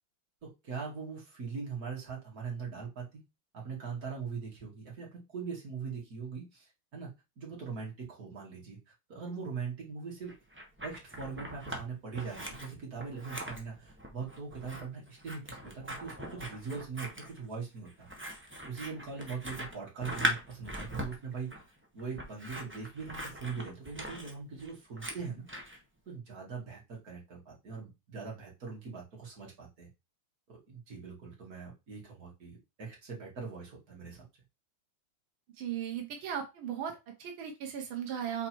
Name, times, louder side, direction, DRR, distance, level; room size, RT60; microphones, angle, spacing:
voice 1, 0.4-3.2 3.5-10.3 10.8-18.1 18.7-21.5 21.9-25.4 26.1-29.9 30.5-34.2, right 5 dB, 50° right, -3 dB, 2.8 m, -41 dB
Scissors, 10.3-11.8 12.1-25.8, equal, 10° right, 0.8 m, -40 dB
voice 2, 35.6-38.5, right 9 dB, 90° right, 2 dB, 1.9 m, -37 dB
5.8 x 4.2 x 4.5 m, 0.25 s
omnidirectional pair, 2.1 m